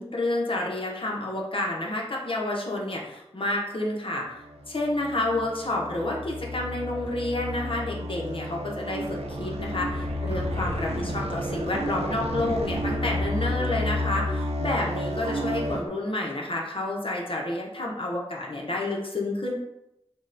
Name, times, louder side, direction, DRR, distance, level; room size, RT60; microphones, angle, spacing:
voice 1, 0.0-4.3 4.7-19.5, left 2 dB, 55° left, -2 dB, 0.6 m, -29 dB
sound 1, 4.4-15.8, left 1 dB, 75° right, 0.4 m, -31 dB
3.5 x 2.1 x 2.5 m, 0.88 s
wide cardioid pair, 60°, 11 cm